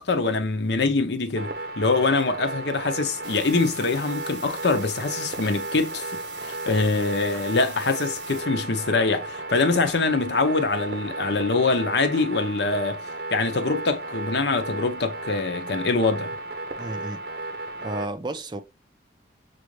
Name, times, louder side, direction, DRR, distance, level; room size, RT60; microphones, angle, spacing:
voice 1, 0.0-13.0 13.3-16.4, left 3 dB, 75° left, 0.7 m, -24 dB
sound 1, 1.4-18.1, right 2 dB, 60° right, 0.7 m, -34 dB
sound 2, 3.2-8.4, right 6 dB, 80° right, 1.0 m, -44 dB
voice 2, 16.8-17.2 17.8-18.6, right 2 dB, 25° right, 0.4 m, -32 dB
6.1 x 2.6 x 3.1 m
head